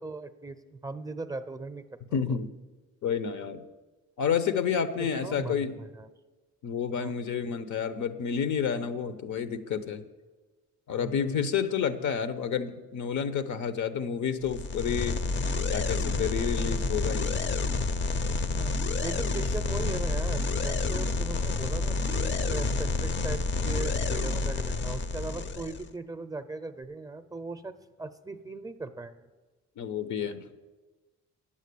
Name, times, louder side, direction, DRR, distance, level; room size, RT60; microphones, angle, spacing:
voice 1, 0.0-1.8 2.1-2.2 5.0-6.1 7.0-7.1 11.0-11.3 18.4-18.7 19.0-29.3, right 3 dB, 10° right, 11 dB, 0.5 m, -39 dB
voice 2, 2.1-2.5 3.0-3.6 4.2-5.8 6.6-10.0 10.9-15.2 15.7-17.4 29.8-30.4, left 7 dB, 70° left, 12 dB, 0.9 m, -30 dB
sound 1, 14.4-25.9, left 3 dB, 40° left, 0.6 m, -29 dB
9.2 x 7.2 x 8.4 m, 1.2 s
cardioid pair, 90°, 30 cm